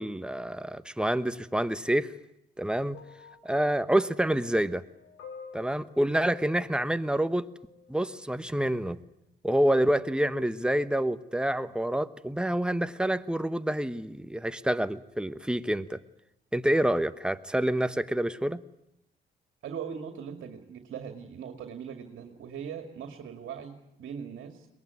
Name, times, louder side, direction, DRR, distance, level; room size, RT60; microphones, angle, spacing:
voice 1, 0.0-2.1 2.6-3.0 3.4-4.8 5.5-7.5 7.9-9.0 9.4-16.0 16.5-18.6, right 1 dB, 5° right, 12 dB, 1.1 m, -27 dB
sound 1, 2.9-8.0 8.9-9.1, left 5 dB, 90° left, 3.7 m, -50 dB
voice 2, 19.6-24.7, right 7 dB, 75° right, 6 dB, 2.4 m, -40 dB
22.5 x 20.0 x 9.6 m, 0.84 s
cardioid pair, 90°, 20 cm